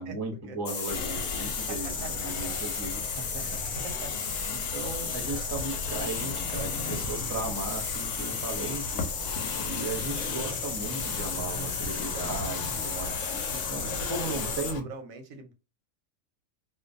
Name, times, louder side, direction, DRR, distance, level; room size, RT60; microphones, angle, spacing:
voice 1, 0.0-3.8 4.5-9.0 9.6-14.9, right 3 dB, 30° right, 2 dB, 0.4 m, -36 dB
sound 1, 0.6-14.8, left 6 dB, 70° left, 0.5 m, -34 dB
sound 2, 0.9-14.8, left 3 dB, 90° left, 1.0 m, -37 dB
voice 2, 1.4-2.5 3.4-3.6 3.8-4.1 12.7-13.3 13.8-15.5, right 4 dB, 85° right, 6 dB, 1.0 m, -44 dB
2.5 x 2.2 x 2.5 m, 0.30 s
omnidirectional pair, 1.4 m